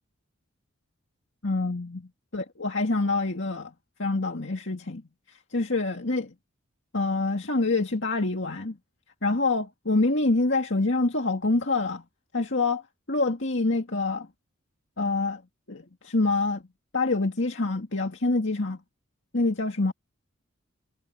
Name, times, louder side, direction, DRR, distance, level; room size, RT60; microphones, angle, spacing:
voice 1, 1.4-3.7 4.0-5.0 5.5-6.3 6.9-8.8 9.2-12.0 12.3-12.8 13.1-14.3 15.0-15.4 15.7-16.6 16.9-18.8 19.3-19.9, left 3 dB, 60° left, 2.1 m, -26 dB
head